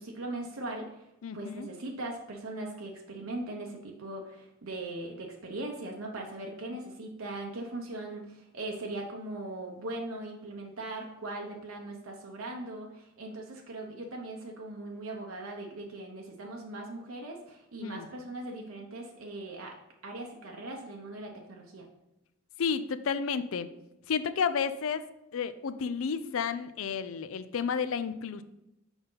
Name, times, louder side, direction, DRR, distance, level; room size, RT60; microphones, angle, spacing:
voice 1, 0.0-1.1 1.3-19.7 20.0-21.9, right 2 dB, 75° right, 0 dB, 0.9 m, -40 dB
voice 2, 1.2-1.7 17.8-18.1 22.6-23.7 24.1-25.0 25.3-28.4, left 6 dB, 75° left, 13 dB, 0.5 m, -31 dB
6.2 x 5.1 x 3.9 m, 0.88 s
head